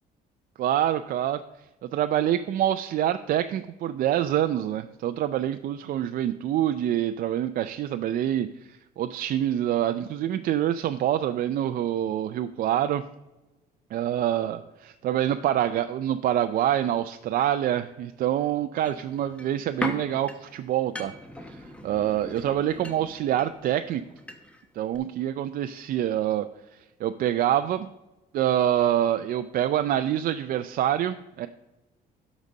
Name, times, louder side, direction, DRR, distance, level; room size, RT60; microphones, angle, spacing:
voice 1, 0.6-1.4 1.8-13.0 13.9-21.1 21.5-24.0 24.8-26.5 27.0-27.9 28.3-31.5, right 11 dB, 55° right, 9 dB, 0.4 m, -26 dB
sound 1, 18.8-24.7 24.9-25.0, left 1 dB, 5° left, 1.1 m, -39 dB
11.5 x 4.1 x 6.2 m, 1.0 s
cardioid pair, 110°, 17 cm